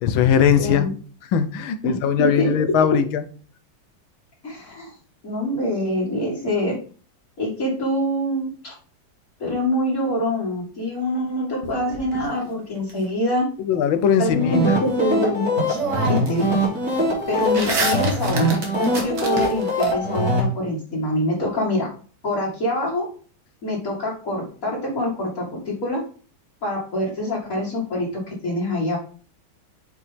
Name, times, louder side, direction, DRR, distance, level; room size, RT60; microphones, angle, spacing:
voice 1, 0.0-0.9 1.3-3.2 13.6-14.8 16.2-16.5, left 8 dB, 85° left, 10 dB, 1.7 m, -20 dB
voice 2, 0.6-0.9 1.8-2.7 4.4-4.9 5.2-6.8 7.4-8.7 9.4-13.5 14.2-15.6 16.1-16.5 17.3-21.9 22.2-23.1 23.6-26.0 26.6-29.0, left 1 dB, 45° left, -6 dB, 2.6 m, -25 dB
sound 1, 11.6-12.9 15.1-15.2 15.6-16.5 16.8-19.9, right 3 dB, 65° right, 2.3 m, -29 dB
sound 2, 14.3-20.4, equal, 45° right, 4.7 m, -23 dB
8.2 x 5.3 x 3.4 m, 0.40 s
omnidirectional pair, 2.1 m